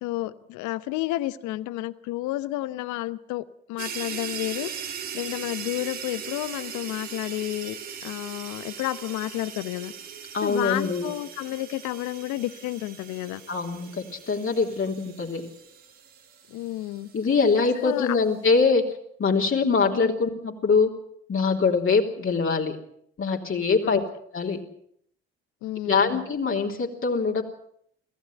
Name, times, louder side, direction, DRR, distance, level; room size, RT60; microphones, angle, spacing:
voice 1, 0.0-4.7 5.1-9.9 10.4-13.4 16.5-17.1 17.8-18.2 19.9-20.2 23.8-24.0 25.6-26.2, left 16 dB, 70° left, 16 dB, 1.0 m, -31 dB
sound 1, 3.8-17.4, right 7 dB, 70° right, 4.4 m, -39 dB
voice 2, 10.3-11.1 13.5-15.4 17.1-18.8 19.2-20.9 21.3-22.8 23.2-24.0 24.3-24.6 25.9-27.4, left 4 dB, 40° left, 0 dB, 3.6 m, -23 dB
25.0 x 15.5 x 8.1 m, 0.68 s
hypercardioid pair, 50°, 30 cm